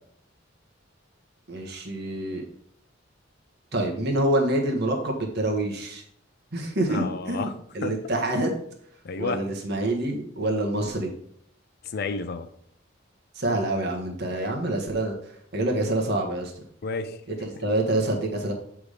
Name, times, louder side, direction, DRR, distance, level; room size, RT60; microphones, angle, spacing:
voice 1, 1.5-2.4 3.7-6.0 6.5-7.5 7.7-8.6 9.2-11.1 13.3-15.1 15.5-16.5 17.3-18.5, right 1 dB, 55° right, 1.3 m, -26 dB
voice 2, 6.9-7.6 7.8-8.0 9.0-9.5 11.8-12.5 14.3-14.6 16.8-17.2, left 4 dB, 55° left, 0.5 m, -31 dB
8.1 x 3.6 x 4.9 m
head